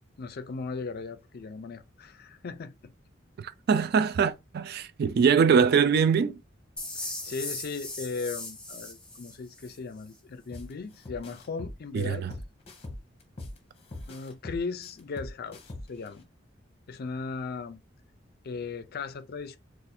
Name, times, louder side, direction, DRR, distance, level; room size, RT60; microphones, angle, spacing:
voice 1, 0.2-2.7 7.0-12.3 14.1-15.6 15.9-16.2 16.9-17.8 18.4-19.6, left 4 dB, 50° left, 0.4 m, -37 dB
voice 2, 3.4-6.4 11.9-12.3, right 6 dB, 55° right, 0.3 m, -23 dB
sound 1, 6.8-9.8, left 2 dB, 5° left, 1.1 m, -38 dB
sound 2, 10.5-10.7 11.0-13.6 13.9-16.1, left 2 dB, 30° left, 0.8 m, -41 dB
2.6 x 2.4 x 4.1 m
head